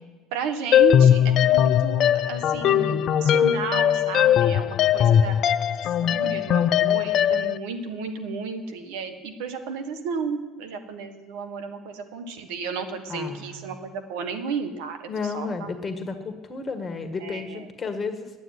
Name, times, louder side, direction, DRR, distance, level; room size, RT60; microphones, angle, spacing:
voice 1, 0.3-5.4 5.8-15.7 17.2-17.7, right 5 dB, 75° right, 8 dB, 1.6 m, -33 dB
sound 1, 0.7-7.6, left 10 dB, 55° left, 0.5 m, -20 dB
voice 2, 13.1-13.7 15.1-18.3, left 4 dB, 30° left, 7 dB, 1.7 m, -32 dB
9.3 x 9.1 x 9.9 m, 1.2 s
hypercardioid pair, 75°, 0 cm